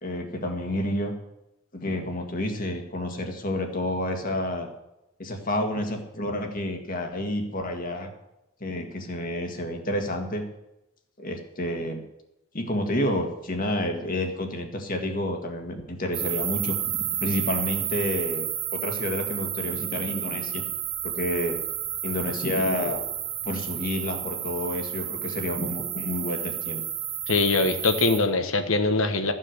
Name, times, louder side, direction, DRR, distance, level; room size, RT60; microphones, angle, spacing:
voice 1, 0.0-1.1 1.7-4.7 5.2-8.1 8.6-10.4 11.2-12.0 12.5-18.5 18.7-20.6 21.0-21.6 22.0-23.2 23.4-26.8, left 1 dB, 40° left, 4 dB, 1.9 m, -29 dB
sound 1, 16.1-28.2, right 10 dB, 65° right, 2.0 m, -31 dB
voice 2, 27.3-29.3, left 3 dB, 60° left, 9 dB, 1.3 m, -22 dB
14.0 x 7.6 x 6.6 m, 0.91 s
head